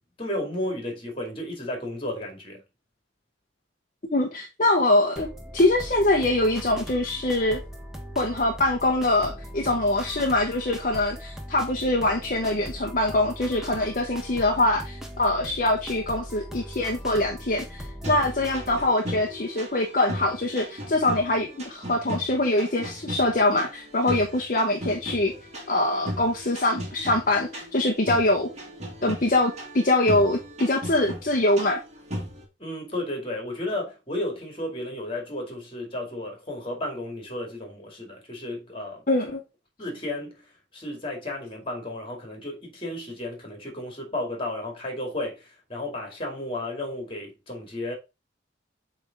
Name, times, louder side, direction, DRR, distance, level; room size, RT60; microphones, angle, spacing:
voice 1, 0.2-2.6 32.6-39.0 39.8-40.4 40.7-47.9, left 1 dB, 30° left, 2.3 m, -33 dB
voice 2, 4.1-5.3 5.5-7.6 8.2-25.3 25.7-28.5 29.0-31.8 39.1-39.4, left 2 dB, 45° left, 0.9 m, -23 dB
sound 1, 5.2-18.9, equal, 5° right, 1.1 m, -39 dB
sound 2, 18.0-32.4, equal, 35° right, 1.9 m, -37 dB
8.0 x 3.5 x 3.6 m
head